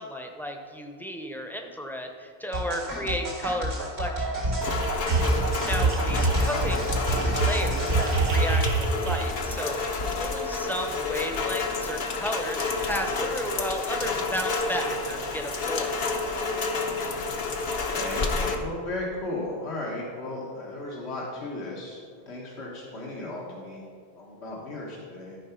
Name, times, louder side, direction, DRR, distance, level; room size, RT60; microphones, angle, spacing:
voice 1, 0.0-4.6 5.7-16.0, equal, ahead, 3 dB, 0.7 m, -34 dB
sound 1, 2.5-8.3, right 1 dB, 80° right, 2.4 m, -29 dB
Rain, 4.6-18.6, left 3 dB, 65° left, 1.0 m, -30 dB
sound 2, 4.8-5.4 5.8-6.5 7.1-9.6, right 5 dB, 65° right, 0.8 m, -26 dB
voice 2, 6.0-6.5 17.9-23.8 24.2-25.4, left 2 dB, 85° left, -3 dB, 1.6 m, -36 dB
13.0 x 4.7 x 5.7 m, 2.1 s
omnidirectional pair, 1.1 m